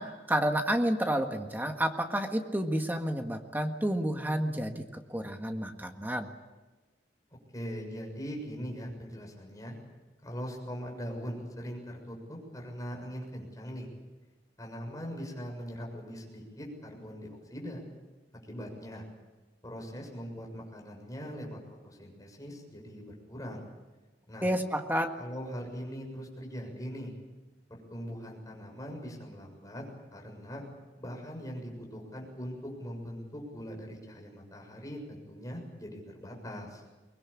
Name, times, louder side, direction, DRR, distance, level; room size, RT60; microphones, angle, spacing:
voice 1, 0.0-6.3 24.4-25.1, right 1 dB, 10° right, 4 dB, 1.7 m, -30 dB
voice 2, 7.5-9.8 10.2-13.9 14.6-17.8 18.5-19.1 19.6-21.6 21.8-23.6 24.3-24.5 25.2-27.1 27.7-29.8 30.1-30.6 31.0-36.8, equal, 20° left, 0 dB, 6.9 m, -41 dB
23.5 x 20.5 x 8.7 m, 1.2 s
head